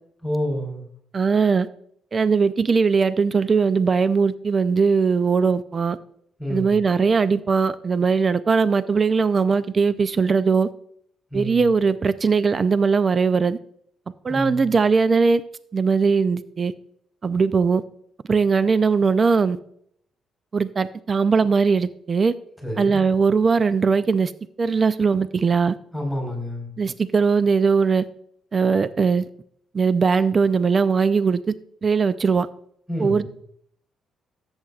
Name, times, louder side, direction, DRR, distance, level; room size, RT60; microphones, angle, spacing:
voice 1, 0.2-0.9 6.4-6.9 11.3-11.7 14.3-14.7 22.6-23.0 25.9-26.7 32.9-33.3, equal, ahead, 4.1 m, -29 dB
voice 2, 1.1-1.7 2.1-6.0 6.5-10.7 11.3-13.6 14.2-15.4 15.7-16.7 17.2-17.8 18.3-19.6 20.5-22.3 22.8-24.3 24.6-25.8 26.8-28.0 28.5-29.3 29.7-31.4 31.8-32.5 33.0-33.3, right 5 dB, 40° right, 0.4 m, -20 dB
13.5 x 8.0 x 2.4 m
cardioid pair, 90°, 0 cm